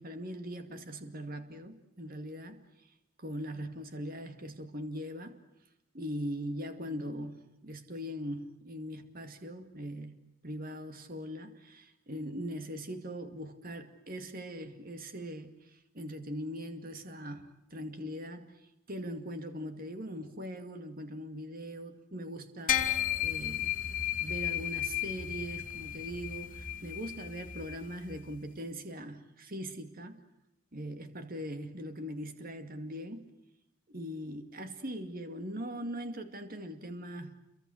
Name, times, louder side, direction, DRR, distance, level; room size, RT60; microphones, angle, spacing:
voice 1, 0.0-2.6 3.2-5.4 5.9-10.2 10.4-18.6 18.9-23.7 24.2-30.2 30.7-33.3 33.9-37.3, equal, 45° right, 8 dB, 2.4 m, -41 dB
sound 1, 22.7-28.3, left 11 dB, 45° left, 1.9 m, -34 dB
29.0 x 23.5 x 8.0 m, 0.88 s
head